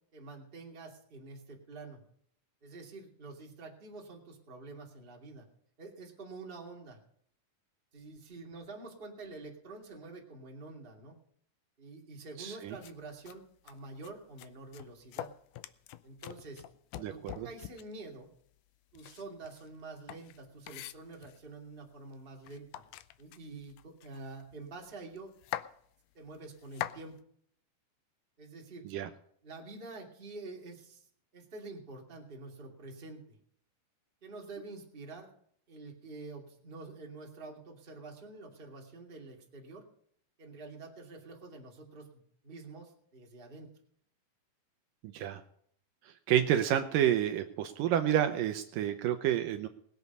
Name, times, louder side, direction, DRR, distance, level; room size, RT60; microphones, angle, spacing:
voice 1, 0.1-2.0 2.6-5.4 5.8-7.0 7.9-11.2 11.8-15.3 16.0-16.6 17.0-18.3 18.9-22.8 23.2-25.3 26.1-27.2 28.4-28.9 29.4-31.1 31.3-33.4 34.2-35.3 35.7-39.9 40.4-43.7, right 3 dB, 20° right, 0 dB, 2.0 m, -47 dB
voice 2, 12.4-12.7 17.0-17.5 28.9-29.1 45.1-45.4 46.3-49.7, right 11 dB, 75° right, 7 dB, 2.3 m, -29 dB
sound 1, 12.8-12.9 13.3-13.4 13.7-14.1 14.4-18.0 18.9-21.5 22.1-22.2 22.4-24.5 24.9-25.0 25.2-25.7 26.4-27.0, left 14 dB, 80° left, 2.0 m, -43 dB
20.5 x 8.2 x 5.3 m, 0.65 s
omnidirectional pair, 4.1 m